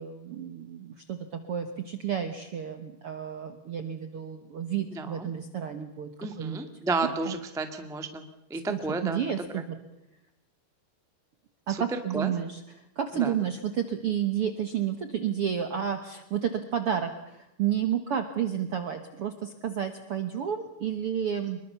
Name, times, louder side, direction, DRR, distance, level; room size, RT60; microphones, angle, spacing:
voice 1, 0.0-6.6 7.3-7.4 8.5-9.8 11.7-21.6, right 9 dB, 65° right, 7 dB, 1.4 m, -31 dB
voice 2, 4.9-5.3 6.2-8.2 8.5-9.4 11.7-12.3 13.1-13.3, right 3 dB, 5° right, 7 dB, 0.6 m, -32 dB
24.5 x 22.5 x 7.0 m, 0.87 s
omnidirectional pair, 4.5 m